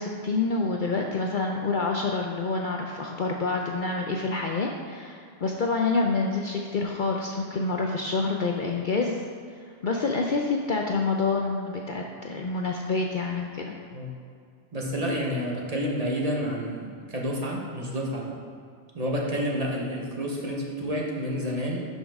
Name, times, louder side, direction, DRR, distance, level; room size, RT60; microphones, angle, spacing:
voice 1, 0.0-9.2 9.6-13.7, left 3 dB, 55° left, 1 dB, 0.6 m, -27 dB
voice 2, 14.7-18.4 18.9-21.9, equal, 35° right, -2 dB, 1.1 m, -29 dB
11.0 x 5.5 x 3.5 m, 2.3 s
omnidirectional pair, 1.2 m